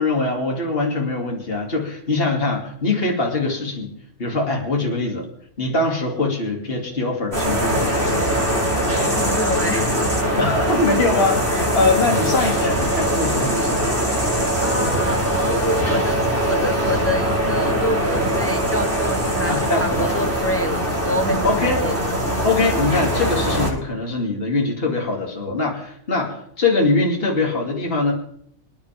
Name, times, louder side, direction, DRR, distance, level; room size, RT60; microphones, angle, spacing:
voice 1, 0.0-3.9 4.2-5.3 5.6-8.3 10.4-13.9 19.5-20.1 21.4-21.8 22.4-28.1, left 3 dB, 45° left, 0 dB, 2.8 m, -22 dB
sound 1, 7.3-23.7, equal, 45° right, 5.7 m, -21 dB
voice 2, 9.2-10.0 11.5-11.7 14.6-22.0, equal, 15° left, 7 dB, 0.7 m, -27 dB
25.5 x 10.0 x 3.5 m, 0.67 s
omnidirectional pair, 1.4 m